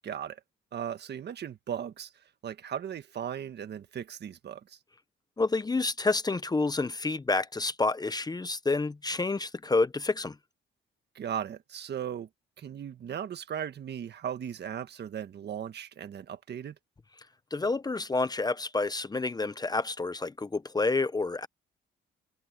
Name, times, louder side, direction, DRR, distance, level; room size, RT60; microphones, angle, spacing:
voice 1, 0.0-0.4 0.7-2.1 2.4-4.8 11.1-12.3 12.6-16.7, right 9 dB, 55° right, 1.6 m, -37 dB
voice 2, 5.4-10.4 17.5-21.5, left 3 dB, 20° left, 0.8 m, -29 dB
cardioid pair, 90°, 20 cm